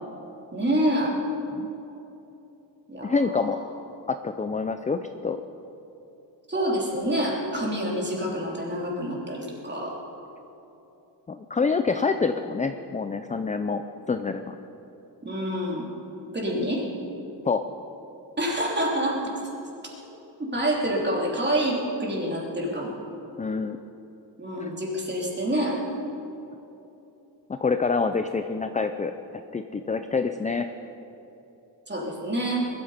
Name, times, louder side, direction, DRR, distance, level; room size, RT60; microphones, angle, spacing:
voice 1, 0.5-1.1 2.9-3.1 3.4-3.6 6.5-10.0 15.2-15.9 16.3-16.8 18.4-19.3 20.4-22.9 24.4-25.8 31.9-32.7, right 1 dB, 25° right, -3 dB, 3.3 m, -27 dB
voice 2, 3.0-3.6 4.1-5.4 11.3-14.5 17.5-17.6 23.4-23.8 24.6-24.7 27.5-30.7, left 4 dB, 20° left, 8 dB, 0.4 m, -27 dB
21.0 x 13.5 x 5.1 m, 3.0 s
wide cardioid pair, 150°, 45 cm